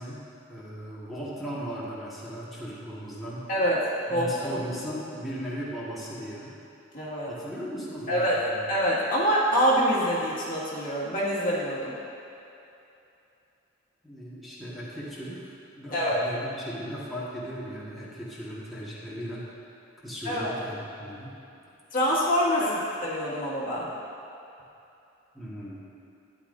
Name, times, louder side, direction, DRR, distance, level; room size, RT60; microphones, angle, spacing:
voice 1, 0.0-3.5 4.1-6.6 7.3-8.6 14.0-19.5 20.0-21.3 22.6-22.7 25.3-25.8, equal, ahead, -9 dB, 1.6 m, -37 dB
voice 2, 4.1-4.6 6.9-7.3 8.1-8.4 8.7-11.9 15.9-16.2 20.2-20.5 21.9-22.6 23.0-23.9, equal, 45° left, -8 dB, 2.0 m, -25 dB
12.5 x 9.8 x 2.7 m, 2.8 s
head